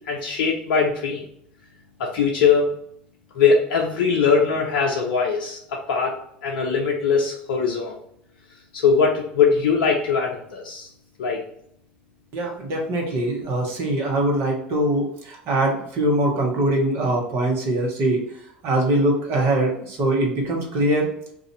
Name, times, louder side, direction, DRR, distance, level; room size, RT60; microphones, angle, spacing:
voice 1, 0.1-1.2 2.0-2.7 3.3-6.2 6.4-7.9 8.7-10.9 11.2-11.4, left 5 dB, 70° left, -1 dB, 0.5 m, -21 dB
voice 2, 12.3-18.2 18.6-21.1, right 1 dB, 50° right, 0 dB, 1.0 m, -22 dB
2.6 x 2.3 x 4.1 m, 0.70 s
hypercardioid pair, 75°, 5 cm